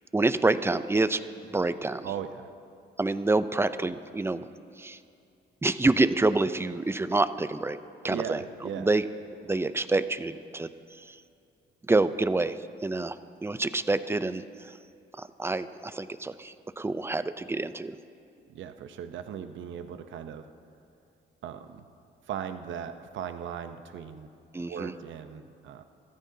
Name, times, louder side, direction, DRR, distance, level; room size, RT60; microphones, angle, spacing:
voice 1, 0.1-1.2 1.5-2.1 3.0-4.5 4.8-5.0 5.6-7.8 8.0-8.4 8.8-9.0 9.4-10.7 11.0-11.2 11.9-13.2 13.4-14.4 15.2-18.0 24.5-24.9, right 2 dB, 10° right, 12 dB, 0.5 m, -27 dB
voice 2, 2.0-2.5 8.1-8.9 18.5-20.5 21.4-21.8 22.3-24.3 24.6-25.8, right 8 dB, 75° right, 8 dB, 0.8 m, -38 dB
25.5 x 14.0 x 2.8 m, 2.5 s
cardioid pair, 90°, 20 cm